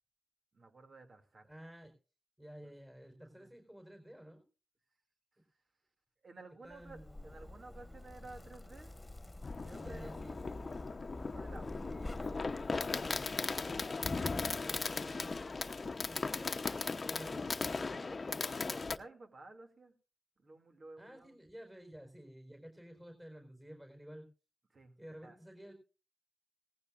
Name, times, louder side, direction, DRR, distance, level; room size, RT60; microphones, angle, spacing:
voice 1, 0.5-1.5 2.6-2.7 3.2-3.5 6.2-8.9 9.6-12.3 16.3-17.3 17.8-19.9 20.4-21.4 24.7-25.4, right 3 dB, 60° right, 5 dB, 2.5 m, -55 dB
voice 2, 1.5-1.9 2.4-4.4 6.6-7.3 9.7-10.6 11.8-12.4 12.7-14.0 14.4-16.7 17.1-17.5 21.0-24.3 25.0-25.7, equal, 15° right, 4 dB, 4.7 m, -53 dB
Zipper (clothing), 6.7-13.4, left 1 dB, 20° left, 1.8 m, -48 dB
Fireworks, 9.4-19.0, left 4 dB, 50° left, 0.9 m, -37 dB
18.5 x 15.0 x 2.5 m, 0.33 s
supercardioid pair, 40°, 0 cm